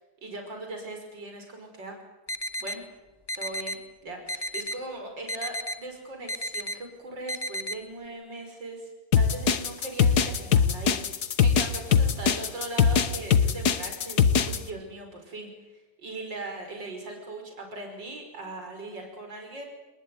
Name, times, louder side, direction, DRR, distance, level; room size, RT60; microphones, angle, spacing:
voice 1, 0.2-2.0 2.6-2.8 3.4-11.0 11.4-15.5 16.0-19.7, right 2 dB, 75° right, 3 dB, 6.3 m, -39 dB
sound 1, 2.3-2.8 3.3-3.8 4.3-4.8 5.3-5.8 6.3-6.8 7.3-7.8, equal, 15° left, 1.2 m, -32 dB
sound 2, 9.1-14.6, left 7 dB, 60° left, 1.8 m, -21 dB
28.5 x 20.0 x 9.5 m, 1.1 s
omnidirectional pair, 2.0 m